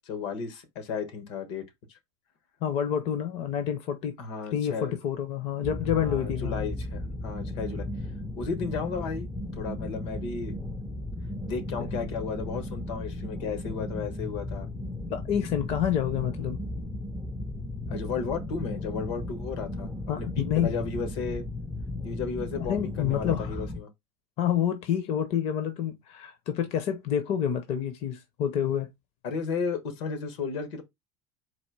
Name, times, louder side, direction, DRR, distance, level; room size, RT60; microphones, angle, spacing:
voice 1, 0.0-1.6 1.9-2.0 4.2-4.9 5.9-7.9 8.4-9.3 9.5-10.6 11.4-14.7 17.9-19.9 20.2-21.4 22.0-23.9 29.2-30.8, left 5 dB, 80° left, 1.3 m, -34 dB
voice 2, 2.6-4.1 4.5-6.7 15.1-16.6 20.1-20.7 22.6-23.6 24.4-28.9, left 9 dB, 45° left, 0.7 m, -28 dB
sound 1, 5.6-23.8, left 1 dB, ahead, 0.4 m, -35 dB
4.2 x 2.5 x 4.6 m
cardioid pair, 155°, 15 cm